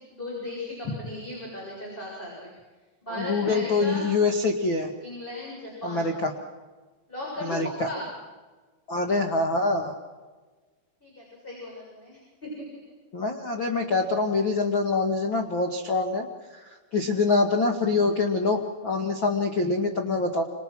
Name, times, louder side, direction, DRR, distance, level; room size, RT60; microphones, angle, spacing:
voice 1, 0.1-2.5 3.0-4.1 5.0-6.2 7.1-8.1 11.0-12.6, left 1 dB, 10° left, -3 dB, 7.3 m, -37 dB
voice 2, 3.1-4.9 5.8-6.3 7.4-7.9 8.9-9.9 13.1-16.3 16.5-20.4, left 3 dB, 60° left, 3 dB, 1.3 m, -25 dB
28.5 x 27.5 x 6.2 m, 1.3 s
omnidirectional pair, 5.5 m